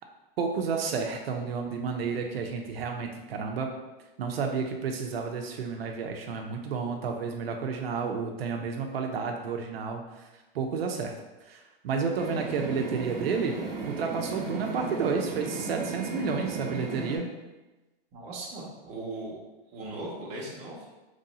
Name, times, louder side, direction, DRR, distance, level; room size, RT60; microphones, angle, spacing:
voice 1, 0.4-3.7 4.2-10.0 10.5-11.1 11.5-13.5 13.9-17.3, right 5 dB, 80° right, 3 dB, 0.6 m, -31 dB
sound 1, 12.2-17.2, right 4 dB, 60° right, 1.0 m, -35 dB
voice 2, 18.1-19.4 19.7-20.8, right 2 dB, 25° right, -4 dB, 0.8 m, -38 dB
3.1 x 2.7 x 4.0 m, 1.1 s
hypercardioid pair, 150°, 29 cm